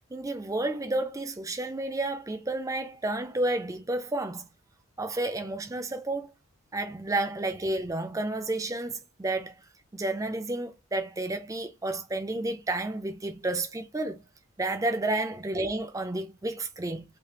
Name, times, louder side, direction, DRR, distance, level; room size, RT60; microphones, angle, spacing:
voice 1, 0.1-4.5 5.0-6.3 6.7-9.6 9.9-14.2 14.6-17.0, right 2 dB, 15° right, 0.4 m, -31 dB
3.3 x 2.7 x 3.0 m
head